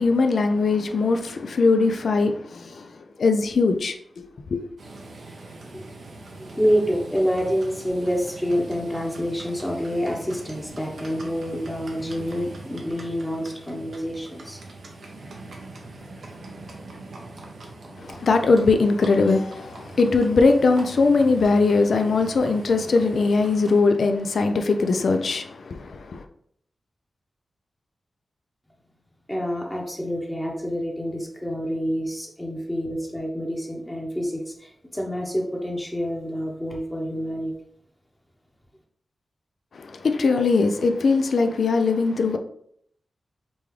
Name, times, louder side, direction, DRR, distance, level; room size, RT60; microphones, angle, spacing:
voice 1, 0.0-4.6 18.0-26.2 39.7-42.4, left 3 dB, 75° left, 0.4 m, -21 dB
Livestock farm animals working animals, 4.8-23.8, right 2 dB, 80° right, 0.8 m, -42 dB
voice 2, 6.5-14.6 29.3-37.5, equal, 15° left, 0.9 m, -27 dB
5.2 x 2.3 x 3.2 m
cardioid pair, 60°, 0 cm